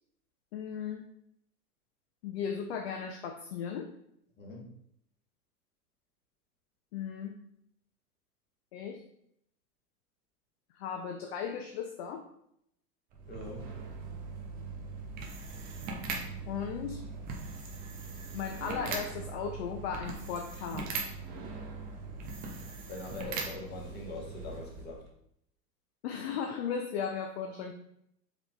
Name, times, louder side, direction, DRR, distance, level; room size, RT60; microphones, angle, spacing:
voice 1, 0.5-1.1 2.2-3.9 6.9-7.4 8.7-9.0 10.7-12.3 16.5-17.0 18.3-20.9 26.0-27.7, left 7 dB, 45° left, 4 dB, 0.5 m, -36 dB
voice 2, 4.4-4.7 13.3-13.7 22.9-25.0, left 3 dB, 20° left, -1 dB, 1.1 m, -43 dB
sound 1, 13.1-25.1, right 4 dB, 20° right, 0.5 m, -40 dB
4.8 x 3.3 x 2.3 m, 0.73 s
hypercardioid pair, 105°, 48 cm